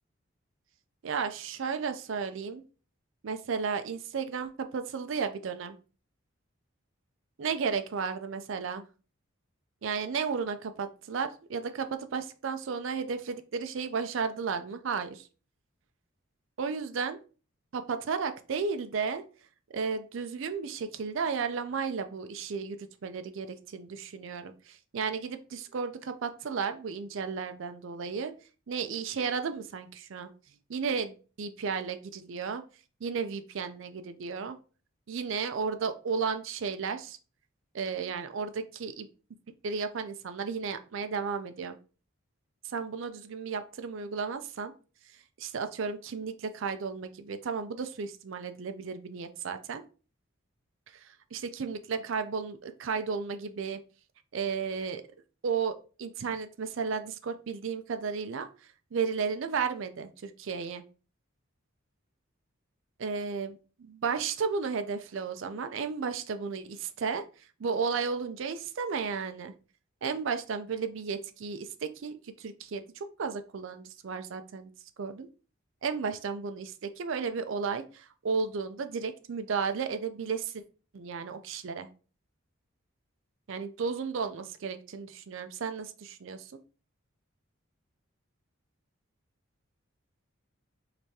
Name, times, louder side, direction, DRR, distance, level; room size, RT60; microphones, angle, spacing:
voice 1, 1.0-2.6 3.2-5.8 7.4-8.8 9.8-15.3 16.6-17.2 17.7-19.2 19.7-28.3 28.7-30.3 30.7-32.6 33.0-34.6 35.1-37.2 37.7-39.1 39.6-41.8 42.6-44.7 45.1-49.8 50.9-53.8 54.3-55.0 55.4-60.8 63.0-69.5 70.0-74.7 75.0-75.3 75.8-80.6 80.9-81.9 83.5-86.6, right 5 dB, 65° right, 9 dB, 0.4 m, -34 dB
4.8 x 3.4 x 2.7 m, 0.35 s
head